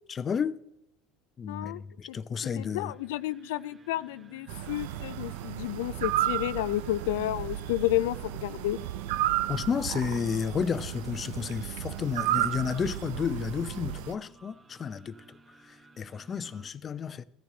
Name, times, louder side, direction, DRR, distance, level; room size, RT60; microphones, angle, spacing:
voice 1, 0.1-0.6 1.4-2.9 9.5-15.4 15.6-17.2, left 6 dB, 35° left, 0.7 m, -32 dB
voice 2, 1.5-1.8 2.1-2.2 2.6-8.8, left 15 dB, 75° left, 0.4 m, -31 dB
sound 1, 2.4-16.7, right 3 dB, 25° right, 1.5 m, -55 dB
screech owl, 4.5-14.1, right 13 dB, 75° right, 0.6 m, -33 dB
15.0 x 14.0 x 3.9 m
hypercardioid pair, 80°, 0 cm